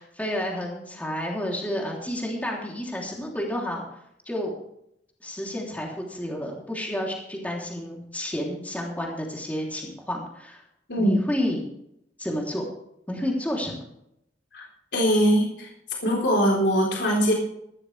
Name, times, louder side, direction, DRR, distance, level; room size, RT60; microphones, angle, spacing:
voice 1, 0.0-3.8 4.2-4.5 5.2-10.6 10.9-11.6 12.2-12.6 13.1-13.8, left 1 dB, 10° left, -2 dB, 3.2 m, -30 dB
voice 2, 10.9-11.2 14.5-14.6 14.9-15.7 16.0-17.3, equal, 70° left, -2 dB, 3.8 m, -21 dB
16.0 x 13.0 x 3.4 m, 0.76 s
head